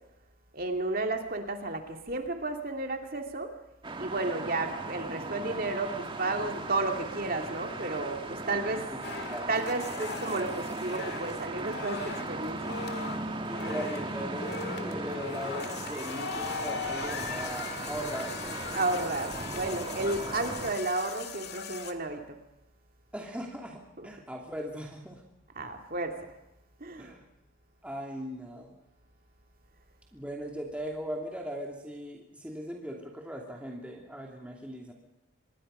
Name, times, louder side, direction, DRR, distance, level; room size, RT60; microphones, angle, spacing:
voice 1, 0.5-3.5 4.0-8.9 9.5-12.8 18.7-22.4 24.0-24.1 25.5-26.2 26.8-27.1, right 2 dB, 45° right, 4 dB, 2.4 m, -32 dB
sound 1, 3.8-20.7, right 2 dB, 25° right, 1.7 m, -37 dB
voice 2, 8.7-9.5 13.4-18.7 23.1-25.2 27.0-27.2 27.8-28.7 30.1-34.9, equal, 5° right, 0 dB, 2.7 m, -39 dB
sound 2, 9.0-21.9, left 5 dB, 50° left, 2.0 m, -39 dB
26.0 x 21.5 x 5.5 m, 0.92 s
head